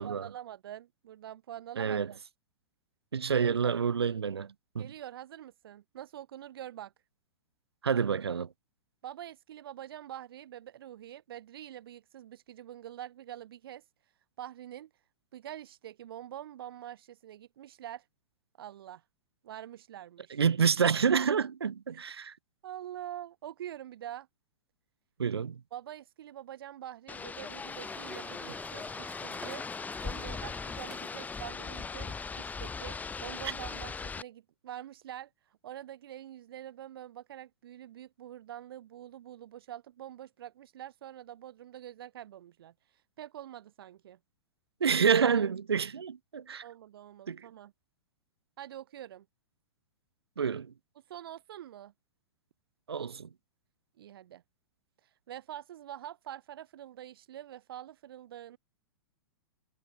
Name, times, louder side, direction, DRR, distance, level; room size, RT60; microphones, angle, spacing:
voice 1, 0.0-2.2 3.4-3.7 4.8-6.9 9.0-13.8 14.4-14.9 15.3-18.0 18.6-19.0 19.4-20.4 21.9-22.1 22.6-24.3 25.7-29.6 30.0-35.3 35.6-42.7 43.2-44.2 46.6-47.7 48.6-49.2 51.1-51.9 54.0-54.4 55.3-58.6, right 11 dB, 70° right, 1.5 m, -45 dB
voice 2, 1.8-2.1 3.1-4.9 7.8-8.5 20.3-22.3 25.2-25.6 44.8-46.6 47.3-47.5 50.4-50.7 52.9-53.3, right 6 dB, 90° right, 1.1 m, -28 dB
sound 1, 27.1-34.2, left 5 dB, 10° left, 1.9 m, -39 dB
sound 2, 27.8-31.8, right 2 dB, 5° right, 1.0 m, -50 dB
hypercardioid pair, 115°, 13 cm